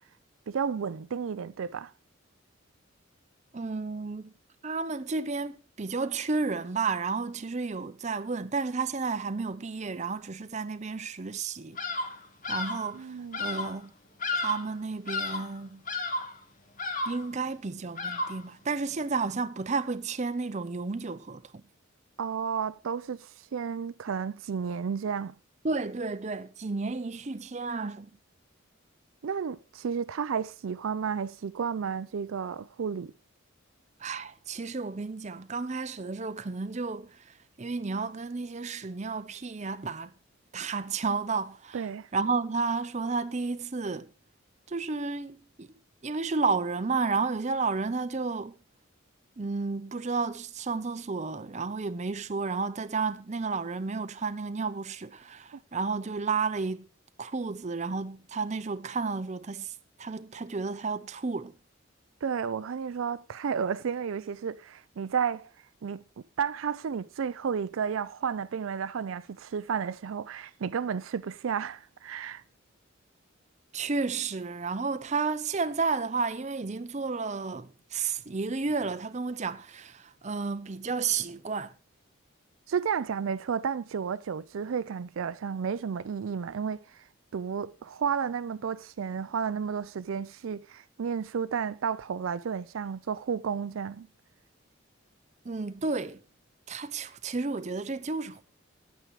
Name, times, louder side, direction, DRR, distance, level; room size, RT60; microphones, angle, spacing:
voice 1, 0.5-1.9 12.9-13.5 22.2-25.4 29.2-33.1 41.7-42.1 62.2-65.5 65.8-66.0 66.4-72.4 82.7-86.8 87.3-94.1, right 6 dB, 75° right, 0.4 m, -32 dB
voice 2, 3.5-4.3 4.6-11.8 12.5-13.9 14.3-15.8 17.1-21.4 25.6-28.1 34.0-40.1 40.5-41.9 42.1-44.1 44.7-45.7 46.0-48.5 49.4-56.9 57.2-61.5 73.7-81.7 95.4-96.2 96.7-98.4, right 4 dB, 35° right, 0.6 m, -32 dB
Bird vocalization bird call bird song, 11.8-12.2 12.4-12.9 13.3-13.8 14.2-14.7 15.1-15.5 15.9-16.4 16.8-17.3 18.0-18.5, left 3 dB, 40° left, 1.4 m, -32 dB
9.5 x 9.1 x 4.8 m
head